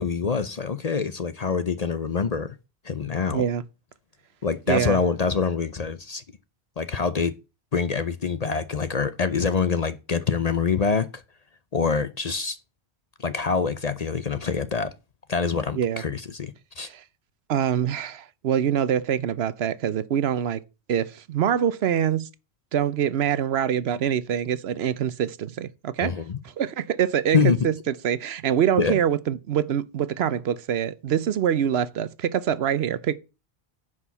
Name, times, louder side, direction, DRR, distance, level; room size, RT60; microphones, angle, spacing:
voice 1, 0.0-2.5 2.8-3.4 4.4-6.2 6.8-7.3 7.7-11.1 11.7-12.6 13.2-14.9 15.3-16.9 26.0-26.4 27.3-27.7 28.8-29.0, left 5 dB, 45° left, 0.6 m, -25 dB
voice 2, 3.3-3.6 4.7-5.0 15.8-16.0 16.9-17.0 17.5-20.6 20.9-22.3 22.7-26.1 26.6-33.2, right 9 dB, 70° right, 0.9 m, -25 dB
9.9 x 4.9 x 7.0 m
omnidirectional pair, 1.1 m